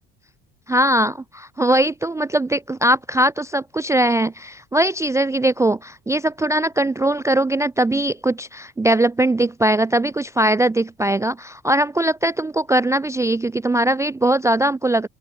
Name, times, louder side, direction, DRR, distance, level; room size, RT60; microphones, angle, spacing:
voice 1, 0.7-15.1, right 1 dB, 5° right, 0.4 m, -20 dB
open air
figure-of-eight pair, 60°, 42 cm